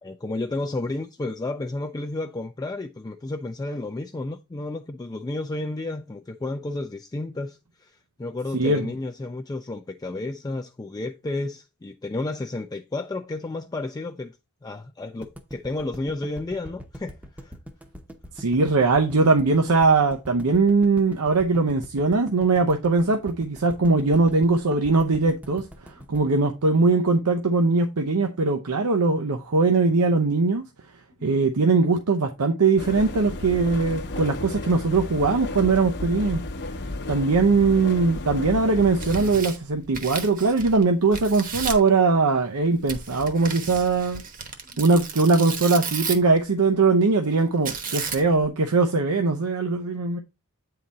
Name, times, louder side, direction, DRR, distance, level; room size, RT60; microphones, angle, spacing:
voice 1, 0.0-14.3 14.6-17.5 44.7-44.8, left 2 dB, 15° left, 0.4 m, -32 dB
voice 2, 8.5-8.9 18.4-30.6 31.2-36.4 37.1-44.2 44.8-50.2, right 3 dB, 80° right, 0.7 m, -21 dB
sound 1, 15.2-27.4, equal, 5° right, 0.7 m, -42 dB
sound 2, 32.8-39.4, left 2 dB, 50° left, 0.8 m, -33 dB
Tearing, 38.8-40.8 41.1-41.9 42.9-46.4 47.7-48.5, right 5 dB, 40° right, 1.0 m, -33 dB
8.6 x 3.9 x 4.0 m
head